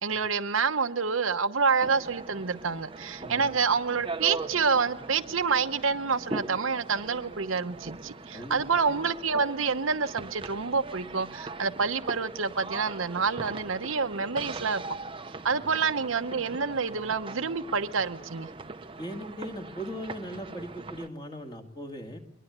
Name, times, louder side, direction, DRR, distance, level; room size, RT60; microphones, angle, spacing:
voice 1, 0.0-14.8 15.4-18.5, right 5 dB, 85° right, 1.0 m, -28 dB
sound 1, 1.8-21.1, right 3 dB, 25° right, 0.8 m, -41 dB
voice 2, 8.3-8.7 15.5-15.6 19.0-22.2, equal, 25° left, 2.2 m, -39 dB
22.5 x 21.5 x 8.1 m
head